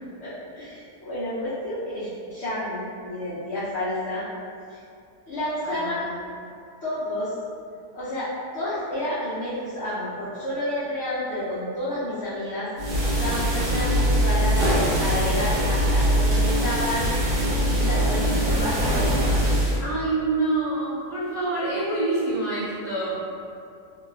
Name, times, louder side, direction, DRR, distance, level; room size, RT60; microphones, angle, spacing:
voice 1, 0.2-4.3 4.7-4.8 5.3-6.1 6.8-7.3 7.9-12.7 13.1-14.6 15.0-17.1 17.6-19.4, left 1 dB, 75° left, -11 dB, 0.6 m, -30 dB
voice 2, 5.6-6.1 19.8-23.2, right 2 dB, 60° right, -15 dB, 0.4 m, -26 dB
sound 1, 12.8-19.8, equal, 90° right, 1.3 m, -22 dB
3.1 x 2.2 x 2.2 m, 2.4 s
omnidirectional pair, 1.8 m